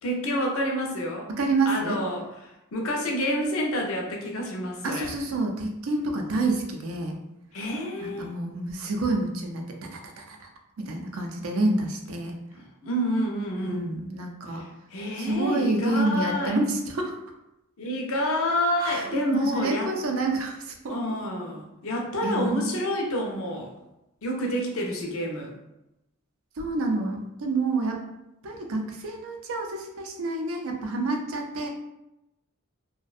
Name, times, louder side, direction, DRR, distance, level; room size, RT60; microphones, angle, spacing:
voice 1, 0.0-1.3 1.7-5.1 7.5-8.3 12.6-13.9 14.5-16.6 17.8-19.9 20.9-23.7 24.2-25.5, equal, 70° left, 1 dB, 0.5 m, -28 dB
voice 2, 1.3-2.0 4.8-7.2 8.0-10.5 10.8-12.3 13.6-14.6 15.2-17.1 18.8-21.0 22.2-22.7 26.6-28.1 28.4-31.7, right 2 dB, 65° right, 3 dB, 0.4 m, -28 dB
2.5 x 2.1 x 2.3 m, 0.91 s
head